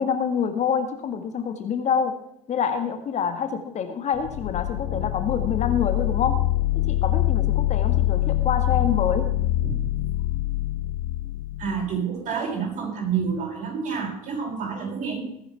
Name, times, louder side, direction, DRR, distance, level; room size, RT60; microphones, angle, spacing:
voice 1, 0.0-2.1 2.5-6.4 6.9-9.3, left 7 dB, 40° left, 7 dB, 1.7 m, -26 dB
sound 1, 4.1-11.9, left 16 dB, 55° left, 0.6 m, -24 dB
voice 2, 11.6-15.2, right 6 dB, 45° right, -1 dB, 6.3 m, -28 dB
20.5 x 10.5 x 3.5 m, 0.75 s
figure-of-eight pair, 65°, 18 cm